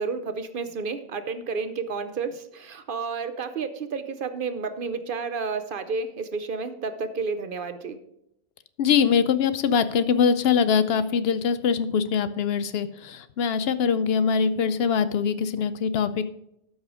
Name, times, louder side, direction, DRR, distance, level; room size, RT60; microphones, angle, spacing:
voice 1, 0.0-8.0, right 4 dB, 60° right, 10 dB, 0.9 m, -31 dB
voice 2, 8.8-16.3, left 6 dB, 75° left, 13 dB, 0.8 m, -23 dB
12.5 x 5.5 x 4.9 m, 0.80 s
omnidirectional pair, 1.0 m